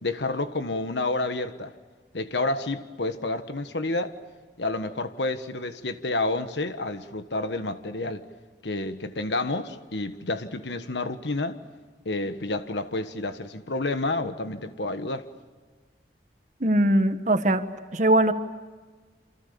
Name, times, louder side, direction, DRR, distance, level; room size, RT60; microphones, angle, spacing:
voice 1, 0.0-1.7 2.1-4.2 4.6-8.2 8.6-11.6 12.0-15.3, left 2 dB, 85° left, 1.5 m, -29 dB
voice 2, 16.6-17.6 17.9-18.3, right 1 dB, 45° right, 1.5 m, -21 dB
28.5 x 27.5 x 6.9 m
head